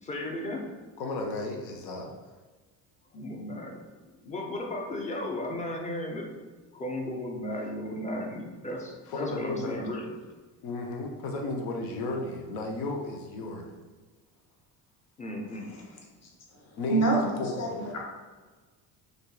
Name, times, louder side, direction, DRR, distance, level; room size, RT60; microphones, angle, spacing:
voice 1, 0.0-0.7 3.1-3.8 4.2-6.4 6.7-10.1 15.2-15.7, left 1 dB, 15° left, 0 dB, 0.5 m, -35 dB
voice 2, 1.0-2.1 9.1-9.9 10.6-13.7 16.8-17.9, left 2 dB, 80° left, 2 dB, 0.6 m, -34 dB
voice 3, 15.7-17.3 17.6-17.7 17.9-18.0, right 3 dB, 30° left, -2 dB, 0.8 m, -29 dB
2.6 x 2.3 x 2.2 m, 1.3 s
hypercardioid pair, 55°, 49 cm